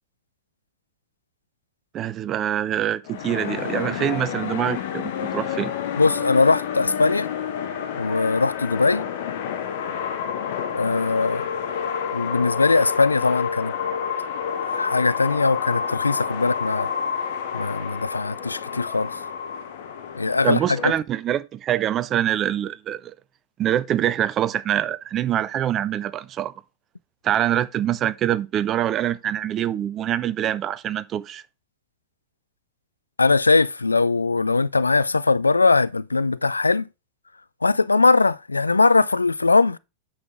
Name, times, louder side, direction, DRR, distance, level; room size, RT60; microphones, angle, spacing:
voice 1, 1.9-5.7 20.4-23.1 23.6-26.5 27.2-31.4, right 11 dB, 30° right, 0.6 m, -25 dB
sound 1, 3.1-20.9, left 7 dB, 55° left, 1.1 m, -29 dB
voice 2, 6.0-7.3 8.0-9.0 10.7-11.5 12.1-13.7 14.7-16.9 17.5-19.2 20.1-20.9 33.2-36.9 37.6-39.8, left 3 dB, 80° left, 0.3 m, -20 dB
8.7 x 5.9 x 3.5 m
figure-of-eight pair, 90°, 0 cm